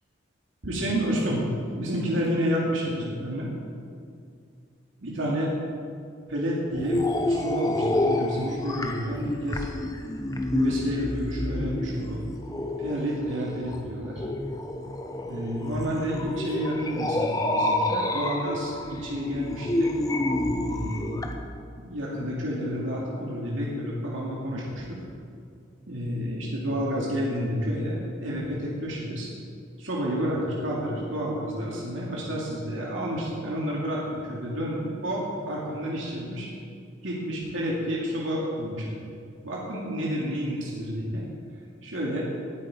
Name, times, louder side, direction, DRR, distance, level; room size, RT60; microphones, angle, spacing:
voice 1, 0.6-1.4 1.7-3.5 5.0-5.5 6.3-9.7 10.5-12.2 12.8-14.2 15.3-19.9 20.6-21.4 21.8-25.0 25.9-29.3 29.8-36.5 37.0-39.1 39.4-41.3 41.8-42.2, equal, 80° right, -4 dB, 2.4 m, -30 dB
sound 1, 6.7-21.3, left 1 dB, 20° left, 0.8 m, -29 dB
19.0 x 8.5 x 5.0 m, 2.4 s
head